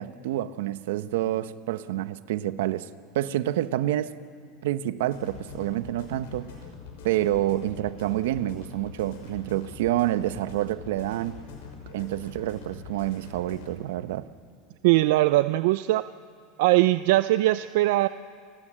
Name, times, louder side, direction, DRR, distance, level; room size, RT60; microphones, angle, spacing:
voice 1, 0.0-2.9 3.1-4.1 4.6-6.5 7.0-11.4 11.9-14.3, right 13 dB, 85° right, 0.9 m, -28 dB
sound 1, 5.1-13.7, left 5 dB, 90° left, 5.5 m, -44 dB
voice 2, 14.8-16.0 16.6-18.1, right 17 dB, 70° right, 0.4 m, -21 dB
29.5 x 16.5 x 7.5 m
supercardioid pair, 150°, 0 cm